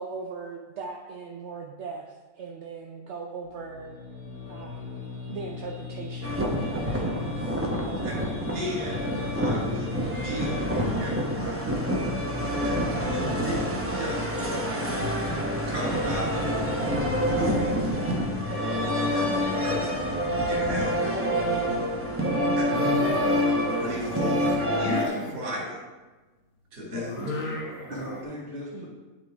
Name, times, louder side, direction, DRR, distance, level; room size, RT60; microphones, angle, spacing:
voice 1, 0.0-4.0 4.5-5.0 5.3-6.4 6.7-7.6 7.8-8.3 22.7-23.0 28.7-28.8, right 4 dB, 60° right, 0 dB, 0.8 m, -39 dB
sound 1, 3.4-11.3, left 6 dB, 85° left, 1.7 m, -39 dB
sound 2, 6.2-25.1, equal, 15° right, 0.5 m, -27 dB
voice 2, 8.5-9.1 9.3-11.8 12.6-14.3 15.7-16.4 17.3-17.9 18.9-19.8 20.5-21.2 22.5-22.6 23.8-25.8 26.7-27.2, equal, 90° right, -3 dB, 2.6 m, -35 dB
sound 3, 18.8-19.6 19.9-20.4 22.6-25.3 26.9-28.2, left 1 dB, 60° left, 1.5 m, -35 dB
voice 3, 27.5-28.9, equal, 35° right, -7 dB, 2.2 m, -39 dB
10.5 x 3.8 x 3.5 m, 1.2 s
omnidirectional pair, 1.7 m